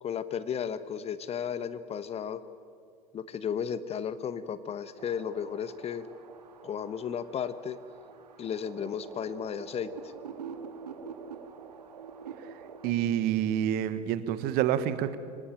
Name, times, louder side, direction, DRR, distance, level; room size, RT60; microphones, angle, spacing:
voice 1, 0.0-2.4 3.1-6.1 6.6-7.8 8.4-9.9, left 8 dB, 30° left, 14 dB, 1.1 m, -34 dB
sound 1, 5.0-12.9, right 6 dB, 75° right, 1.9 m, -46 dB
voice 2, 12.8-15.2, right 10 dB, 45° right, 13 dB, 1.4 m, -27 dB
25.0 x 18.5 x 9.1 m, 2.3 s
figure-of-eight pair, 75°, 21 cm